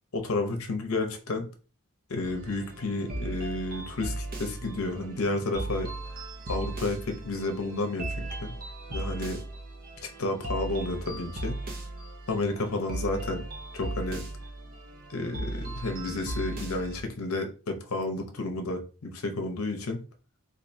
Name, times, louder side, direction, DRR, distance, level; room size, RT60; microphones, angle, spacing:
voice 1, 0.1-1.5 2.1-5.9 6.5-8.5 8.9-9.4 10.2-11.6 12.3-13.4 13.7-14.2 15.1-20.0, left 2 dB, 70° left, 5 dB, 0.7 m, -31 dB
sound 1, 2.2-17.0, right 2 dB, 40° right, 0.6 m, -37 dB
4.4 x 2.5 x 2.6 m, 0.35 s
head